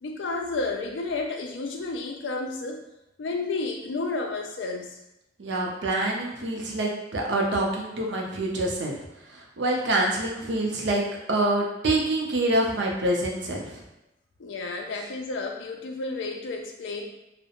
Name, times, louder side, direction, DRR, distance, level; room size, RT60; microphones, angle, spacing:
voice 1, 0.0-2.8 3.2-5.0 14.4-17.1, left 3 dB, 75° left, 3 dB, 0.4 m, -31 dB
voice 2, 5.4-9.0 9.3-13.8, right 1 dB, 70° right, -1 dB, 0.5 m, -26 dB
2.3 x 2.1 x 2.8 m, 0.90 s
head